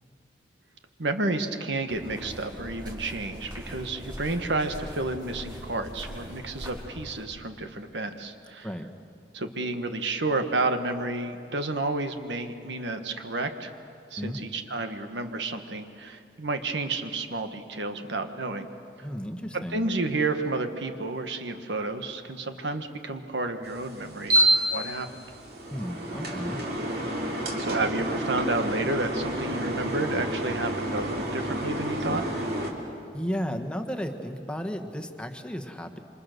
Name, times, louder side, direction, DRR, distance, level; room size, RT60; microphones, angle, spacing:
voice 1, 1.0-8.7 9.3-13.7 14.1-18.7 19.5-25.1 27.1-32.2, right 2 dB, 80° right, 7 dB, 1.6 m, -31 dB
sound 1, 1.9-7.3, equal, 25° right, 5.1 m, -41 dB
voice 2, 19.0-19.8 25.7-26.6 33.1-36.0, equal, 5° left, 5 dB, 1.4 m, -33 dB
sound 2, 23.6-32.7, right 1 dB, 60° right, 3.3 m, -29 dB
27.5 x 26.0 x 6.8 m, 2.5 s
head